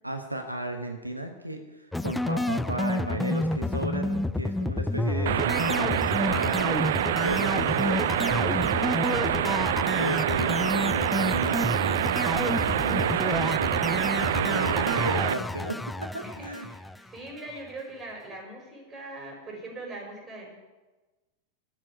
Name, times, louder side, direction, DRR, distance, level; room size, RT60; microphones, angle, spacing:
voice 1, 0.0-9.5 9.9-16.7, right 1 dB, 85° right, 5 dB, 1.1 m, -35 dB
sound 1, 1.9-17.3, left 2 dB, 5° left, 0.3 m, -30 dB
sound 2, 5.3-15.3, right 11 dB, 60° right, 0.5 m, -26 dB
voice 2, 16.2-20.5, right 2 dB, 20° right, -1 dB, 5.5 m, -42 dB
12.0 x 7.4 x 9.5 m, 1.2 s
figure-of-eight pair, 90°, 0 cm